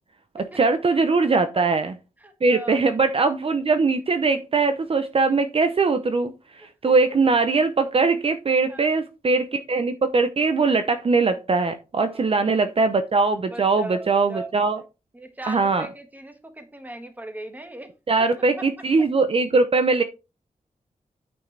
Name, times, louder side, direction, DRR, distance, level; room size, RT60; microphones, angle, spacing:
voice 1, 0.3-1.9 2.4-14.8 15.5-15.9 18.1-20.0, right 4 dB, 45° right, 9 dB, 0.7 m, -21 dB
voice 2, 2.2-2.8 6.6-6.7 8.7-8.9 12.1-12.6 13.5-14.5 15.1-17.9 18.6-18.7, right 1 dB, 10° right, 7 dB, 1.4 m, -38 dB
9.2 x 6.2 x 3.3 m, 0.29 s
wide cardioid pair, 145°, 14 cm